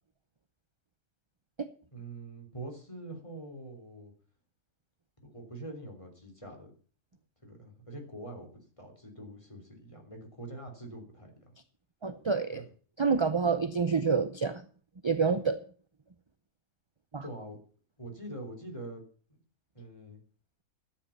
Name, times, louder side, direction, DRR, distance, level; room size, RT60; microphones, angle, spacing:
voice 1, 1.9-4.1 5.2-6.7 7.4-11.5 12.5-12.6 17.2-17.6 18.0-19.0 19.3-19.4 19.7-20.2, right 1 dB, 20° left, 3 dB, 3.7 m, -44 dB
voice 2, 12.0-12.6 13.0-14.6 15.0-15.6 17.1-17.2, right 5 dB, 35° right, 10 dB, 0.5 m, -27 dB
13.0 x 8.8 x 7.2 m, 0.43 s
omnidirectional pair, 1.5 m